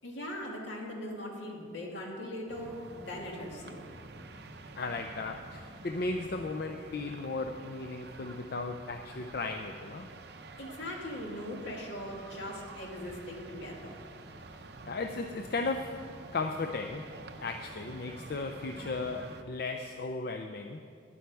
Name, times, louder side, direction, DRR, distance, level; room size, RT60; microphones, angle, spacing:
voice 1, 0.0-3.8 10.6-14.0, left 1 dB, 75° left, -1 dB, 2.0 m, -40 dB
sound 1, 2.5-19.4, right 2 dB, 55° right, 0.7 m, -48 dB
voice 2, 4.8-10.1 14.9-16.1 16.3-17.2 17.4-20.9, left 3 dB, 50° left, 5 dB, 0.5 m, -36 dB
11.0 x 10.5 x 4.7 m, 2.2 s
head